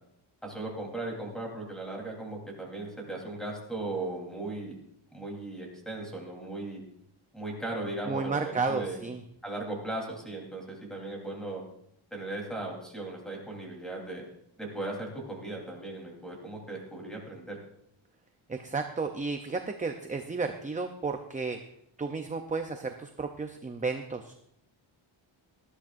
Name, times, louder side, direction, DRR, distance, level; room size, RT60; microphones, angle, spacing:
voice 1, 0.4-4.8 5.1-6.8 7.3-9.0 9.4-11.6 12.1-14.2 14.6-17.6, right 2 dB, ahead, -1 dB, 3.5 m, -37 dB
voice 2, 8.1-9.2 18.5-21.6 22.0-24.3, right 4 dB, 15° right, 6 dB, 0.6 m, -32 dB
19.5 x 13.5 x 2.6 m, 0.74 s
wide cardioid pair, 180°, 50 cm